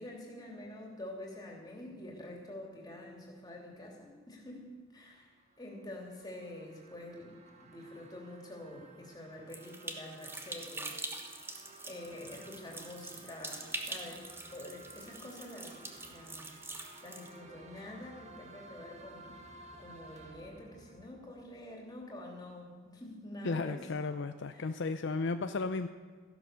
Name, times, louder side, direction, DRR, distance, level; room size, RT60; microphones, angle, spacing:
voice 1, 0.0-4.7 4.9-7.4 7.6-11.0 11.8-16.6 17.0-19.4 19.8-23.8 24.5-24.6, left 1 dB, 20° left, -1 dB, 3.0 m, -47 dB
sound 1, 5.1-22.1, right 2 dB, 30° right, 1.5 m, -56 dB
sound 2, 9.5-17.3, right 2 dB, 10° right, 1.1 m, -44 dB
voice 2, 23.4-25.9, left 3 dB, 55° left, 9 dB, 0.5 m, -34 dB
14.5 x 11.0 x 6.9 m, 1.5 s
head